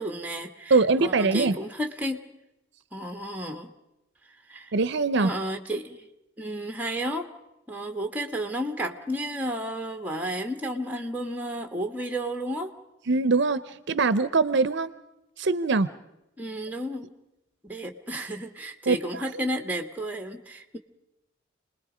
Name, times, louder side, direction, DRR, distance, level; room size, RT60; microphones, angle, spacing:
voice 1, 0.0-2.3 2.9-3.7 4.5-4.7 5.2-6.1 6.4-7.3 7.7-12.7 16.4-17.1 17.6-20.8, right 1 dB, 10° right, 5 dB, 1.4 m, -32 dB
voice 2, 0.7-1.6 4.7-5.3 13.1-14.9 15.4-15.9 18.9-19.2, right 3 dB, 65° right, 15 dB, 0.7 m, -23 dB
28.5 x 20.5 x 5.0 m, 0.90 s
head